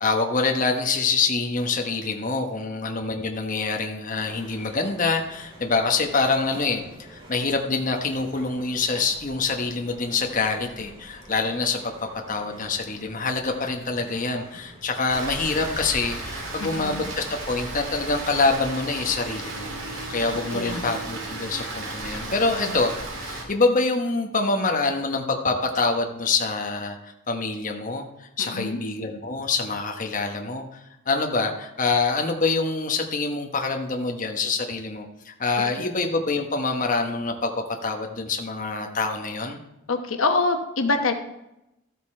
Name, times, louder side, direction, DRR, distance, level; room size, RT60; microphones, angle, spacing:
voice 1, 0.0-6.8 7.1-11.9 12.3-19.7 20.1-30.8 31.1-39.6, left 3 dB, 40° left, 3 dB, 1.1 m, -25 dB
sound 1, 4.2-17.6, right 1 dB, 25° right, 2.5 m, -47 dB
Rain, 15.1-23.4, right 2 dB, 65° right, 2.8 m, -34 dB
voice 2, 16.6-17.0 20.5-20.9 22.7-22.8 28.4-28.8 35.8-35.9 39.9-41.1, left 3 dB, 90° left, 6 dB, 1.1 m, -25 dB
13.5 x 8.1 x 4.3 m, 0.88 s
head